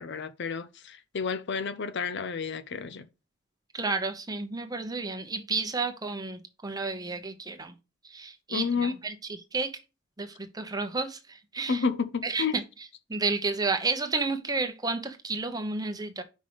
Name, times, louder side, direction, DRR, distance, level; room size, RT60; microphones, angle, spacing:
voice 1, 0.0-3.1 8.5-9.0 11.7-12.6, left 5 dB, 55° left, 0.6 m, -30 dB
voice 2, 3.7-7.7 8.1-9.1 9.5-9.8 10.2-11.8 12.2-12.6 13.1-16.2, right 3 dB, 20° right, 0.9 m, -31 dB
5.4 x 5.2 x 5.2 m
head